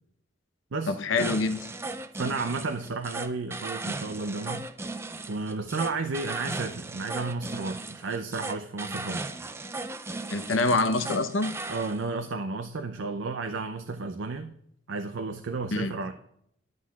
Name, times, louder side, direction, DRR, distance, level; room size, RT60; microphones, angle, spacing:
voice 1, 0.9-1.7 10.3-11.5 15.7-15.9, left 3 dB, 85° left, 10 dB, 0.7 m, -26 dB
sound 1, 1.2-12.0, right 2 dB, 15° right, 0.4 m, -37 dB
voice 2, 2.2-4.7 5.3-9.3 11.7-14.5 14.9-16.1, right 3 dB, 75° right, 6 dB, 0.5 m, -32 dB
11.5 x 7.5 x 2.3 m, 0.72 s
head